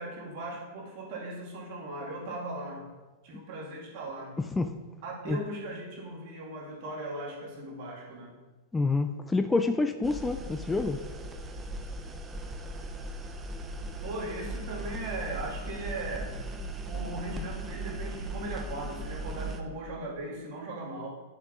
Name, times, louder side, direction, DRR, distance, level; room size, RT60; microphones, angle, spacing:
voice 1, 0.0-2.8 3.2-4.4 5.0-8.4 14.0-16.3 16.8-21.1, right 1 dB, 50° right, -3 dB, 1.9 m, -38 dB
voice 2, 8.7-11.0, left 3 dB, 10° left, 8 dB, 0.3 m, -27 dB
sound 1, 10.0-19.6, right 2 dB, 20° right, 0.7 m, -38 dB
9.5 x 5.8 x 2.5 m, 1.3 s
figure-of-eight pair, 95°, 0 cm